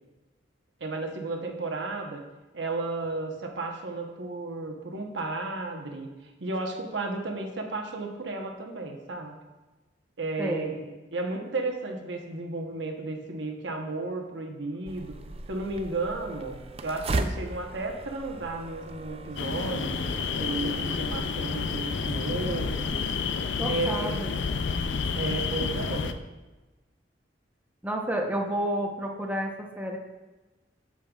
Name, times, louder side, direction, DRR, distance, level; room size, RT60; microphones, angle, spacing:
voice 1, 0.8-2.2 2.5-9.4 10.2-15.1 15.5-20.0 20.4-23.0 23.6-24.2 25.2-26.1, right 3 dB, 75° right, 2 dB, 1.0 m, -33 dB
voice 2, 10.4-10.8 23.6-24.3 27.8-30.0, right 1 dB, 10° right, 0 dB, 0.8 m, -30 dB
sound 1, 14.9-21.1, right 2 dB, 35° right, 0.4 m, -36 dB
sound 2, 19.4-26.1, left 5 dB, 75° left, 0.4 m, -30 dB
8.6 x 7.4 x 2.4 m, 1.1 s
head